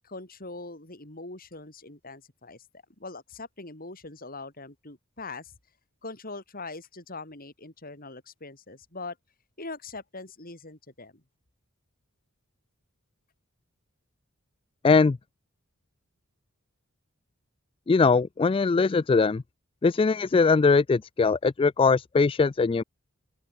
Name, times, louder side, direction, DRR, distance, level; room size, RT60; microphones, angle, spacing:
voice 1, 0.0-2.6 3.0-5.5 6.0-9.2 9.6-11.2, left 3 dB, 40° left, 5.2 m, -42 dB
voice 2, 14.8-15.2 17.9-19.4 19.8-22.8, left 4 dB, 25° left, 0.3 m, -21 dB
open air
head